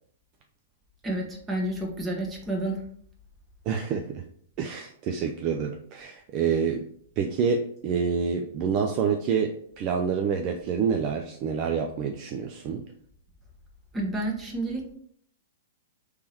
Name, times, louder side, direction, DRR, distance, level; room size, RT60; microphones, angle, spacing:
voice 1, 1.0-2.8 13.9-14.9, right 1 dB, 15° right, 0 dB, 1.2 m, -30 dB
voice 2, 3.7-4.2 4.6-6.9 7.2-12.8, right 6 dB, 40° right, 4 dB, 0.4 m, -27 dB
3.5 x 3.2 x 4.3 m, 0.62 s
hypercardioid pair, 120°, 0 cm